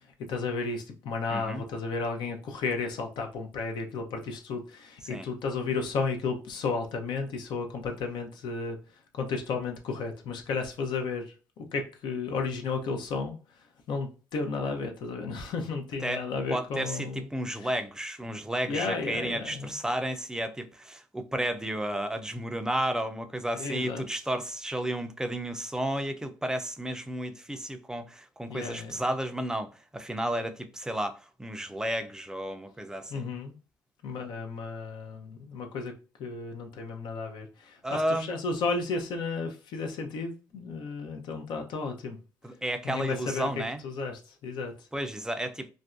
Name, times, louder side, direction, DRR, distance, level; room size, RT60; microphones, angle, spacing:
voice 1, 0.0-8.8 9.1-17.7 18.7-19.8 23.5-24.0 28.5-29.0 33.1-33.6 34.0-35.9 36.2-42.2 42.8-44.9, left 4 dB, 65° left, 0.6 m, -33 dB
voice 2, 1.3-1.6 5.1-5.3 16.0-16.2 16.5-33.2 37.8-38.3 42.4-43.8 44.9-45.7, right 1 dB, 10° right, 0.5 m, -32 dB
2.5 x 2.1 x 2.4 m
supercardioid pair, 65°, 8 cm